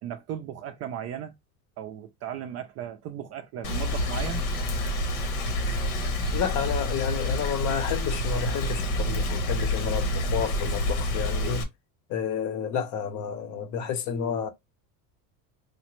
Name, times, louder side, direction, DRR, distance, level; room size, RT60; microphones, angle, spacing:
voice 1, 0.0-1.3 1.8-4.4, right 9 dB, 40° right, 0.4 m, -36 dB
Rain, 3.6-11.6, left 1 dB, 80° left, 1.2 m, -28 dB
sound 1, 3.6-8.8, right 3 dB, 10° right, 0.8 m, -47 dB
voice 2, 6.3-11.7 12.1-14.5, left 8 dB, 45° left, 0.7 m, -30 dB
4.9 x 2.0 x 3.0 m
supercardioid pair, 135°, 43 cm